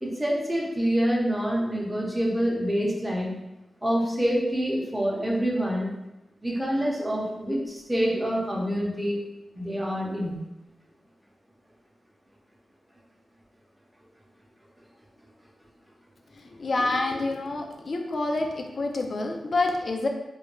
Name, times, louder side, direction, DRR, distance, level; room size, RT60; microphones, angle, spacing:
voice 1, 0.0-3.4 3.8-5.9 6.4-9.2 9.5-10.4, equal, 10° right, -3 dB, 0.7 m, -26 dB
voice 2, 16.5-20.1, left 2 dB, 55° left, 3 dB, 0.4 m, -27 dB
2.4 x 2.1 x 2.9 m, 0.97 s
cardioid pair, 55°, 0 cm